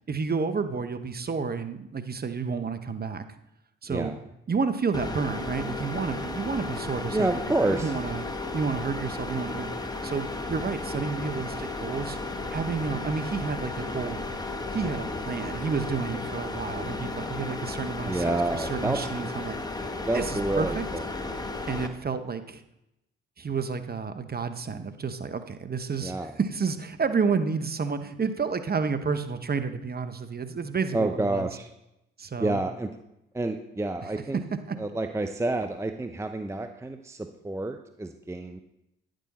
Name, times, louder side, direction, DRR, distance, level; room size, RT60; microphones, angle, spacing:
voice 1, 0.1-3.2 3.8-4.2 4.5-8.3 8.5-12.2 12.5-14.2 14.7-19.6 20.1-20.8 21.7-22.6 23.4-31.5 32.2-32.6 34.0-34.4 34.7-34.8, right 5 dB, 35° right, 10 dB, 1.0 m, -30 dB
sound 1, 4.9-21.9, left 2 dB, 15° left, 1.1 m, -34 dB
voice 2, 7.1-7.9 18.0-19.0 20.0-21.0 26.0-26.3 30.9-31.7 32.4-32.9 33.3-34.4 34.8-38.6, right 2 dB, 10° right, 7 dB, 0.7 m, -29 dB
10.0 x 6.3 x 4.2 m, 0.86 s
hypercardioid pair, 55°, 29 cm